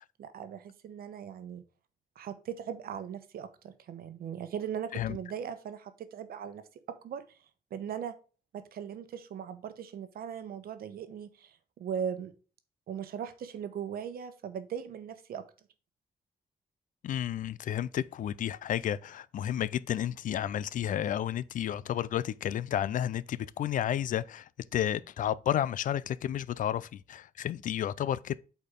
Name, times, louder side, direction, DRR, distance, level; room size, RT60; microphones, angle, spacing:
voice 1, 0.2-1.6 2.2-7.4 7.7-8.1 8.5-12.3 12.9-15.4, right 8 dB, 75° right, 1.0 m, -39 dB
voice 2, 17.0-28.4, left 10 dB, 60° left, 0.4 m, -32 dB
8.2 x 4.4 x 3.6 m
wide cardioid pair, 180°, 16 cm